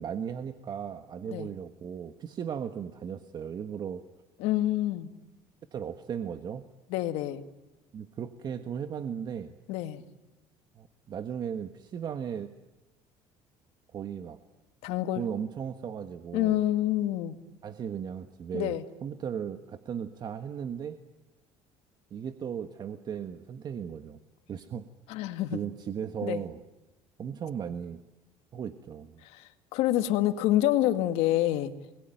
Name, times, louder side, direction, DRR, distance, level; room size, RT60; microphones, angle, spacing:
voice 1, 0.0-4.1 5.7-6.7 7.9-9.5 10.7-12.5 13.9-14.4 15.2-16.6 17.6-21.0 22.1-24.2 24.5-24.9 25.5-26.6 27.2-28.0 28.5-29.2, right 8 dB, 40° right, 9 dB, 1.5 m, -36 dB
voice 2, 4.4-5.1 6.9-7.4 9.7-10.0 14.8-15.3 16.3-17.4 18.5-18.8 25.1-25.6 26.2-26.4 29.2-31.7, left 14 dB, 80° left, 9 dB, 2.0 m, -27 dB
28.5 x 21.5 x 9.2 m, 1.0 s
cardioid pair, 110°, 11 cm